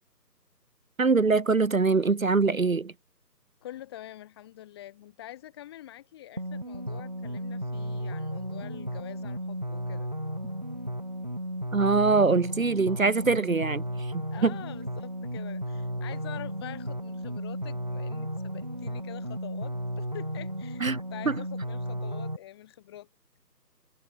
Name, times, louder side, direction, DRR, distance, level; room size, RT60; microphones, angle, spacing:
voice 1, 1.0-2.9 11.7-14.5 20.8-21.0 21.3-21.4, right 4 dB, 55° right, 1.4 m, -23 dB
voice 2, 3.6-10.1 14.3-23.1, left 13 dB, 15° left, 4.4 m, -46 dB
sound 1, 6.4-22.4, equal, 25° right, 0.8 m, -34 dB
figure-of-eight pair, 160°, 50 cm